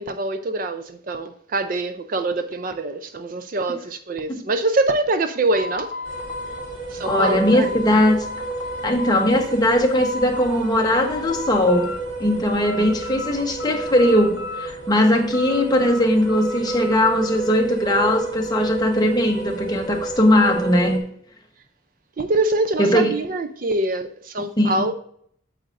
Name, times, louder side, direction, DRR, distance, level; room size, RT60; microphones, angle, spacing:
voice 1, 0.0-5.9 6.9-7.7 22.2-24.9, right 2 dB, 40° right, 0.4 m, -24 dB
sound 1, 5.5-9.3 9.7-10.6 10.9-12.0 12.3-13.3 13.6-14.9 15.3-17.4, left 2 dB, 55° left, 1.3 m, -34 dB
sound 2, 6.1-21.0, right 3 dB, 65° right, 1.4 m, -31 dB
voice 2, 7.1-8.3 8.8-11.9 12.2-21.1 22.8-23.1 24.6-24.8, left 1 dB, 20° left, 1.0 m, -19 dB
8.7 x 7.6 x 2.5 m
head